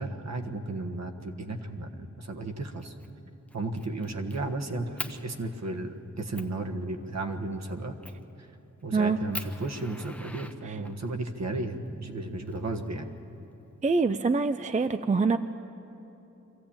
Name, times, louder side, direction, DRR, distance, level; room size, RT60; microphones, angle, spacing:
voice 1, 0.0-2.9 3.5-7.9 8.4-8.5 8.8-13.1, right 2 dB, 55° right, 4 dB, 1.5 m, -34 dB
Fire, 2.8-3.1 3.5-4.4 5.0-5.2 5.8-5.9 6.3-6.6 8.0-8.3 8.8-8.9 9.3-11.1 12.1-13.1, left 1 dB, 5° left, 0.9 m, -41 dB
voice 2, 13.8-15.4, right 4 dB, 25° right, 10 dB, 0.4 m, -25 dB
24.0 x 15.0 x 8.8 m, 3.0 s
wide cardioid pair, 120°, 31 cm